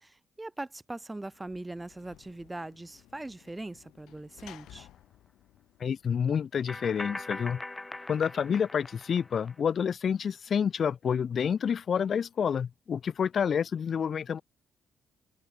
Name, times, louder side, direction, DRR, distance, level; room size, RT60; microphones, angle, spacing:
voice 1, 0.0-4.9, right 2 dB, 15° right, 0.6 m, -41 dB
Sliding door / Slam, 1.1-6.5, left 14 dB, 85° left, 6.3 m, -56 dB
sound 1, 4.6-4.7 6.7-9.5, left 2 dB, 15° left, 1.3 m, -41 dB
voice 2, 5.8-7.6 8.1-14.4, left 7 dB, 50° left, 0.7 m, -28 dB
open air
cardioid pair, 90°, 0 cm